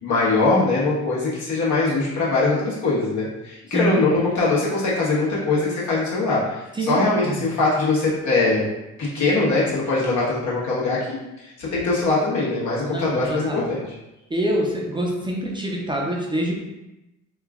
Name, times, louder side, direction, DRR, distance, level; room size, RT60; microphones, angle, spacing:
voice 1, 0.0-8.6 9.0-13.8, left 3 dB, 70° left, -7 dB, 1.4 m, -22 dB
voice 2, 3.7-4.1 6.7-7.5 12.9-13.7 14.3-16.6, right 1 dB, 15° right, -2 dB, 0.6 m, -26 dB
2.9 x 2.4 x 3.6 m, 0.98 s
cardioid pair, 90°, 30 cm